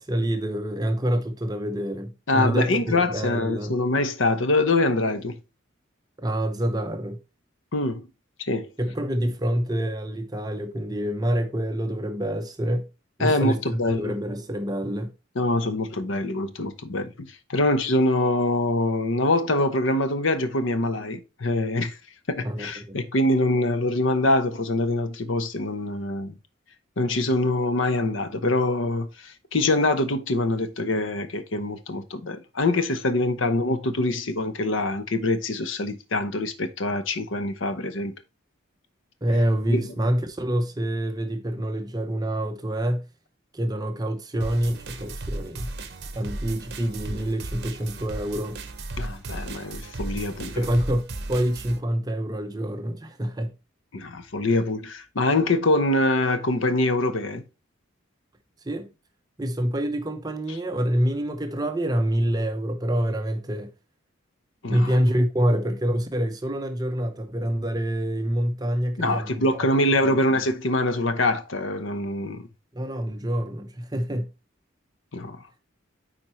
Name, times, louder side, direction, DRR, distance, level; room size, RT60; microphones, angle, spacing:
voice 1, 0.0-3.8 6.2-7.2 8.8-12.9 13.2-15.1 22.4-23.0 39.2-43.0 43.5-45.7 46.1-48.6 50.6-53.5 58.6-58.9 59.4-63.7 64.7-69.5 70.0-70.1 72.7-74.3, equal, 20° right, 0.7 m, -26 dB
voice 2, 2.3-5.4 7.7-8.0 8.5-8.7 13.2-14.1 15.4-22.0 22.3-26.4 27.0-38.1 39.7-39.9 49.0-50.6 53.9-57.4 64.6-64.9 69.0-72.5 75.1-75.4, left 2 dB, 75° left, 0.8 m, -24 dB
sound 1, 44.4-51.8, right 2 dB, 55° right, 0.9 m, -35 dB
8.9 x 4.3 x 3.0 m
head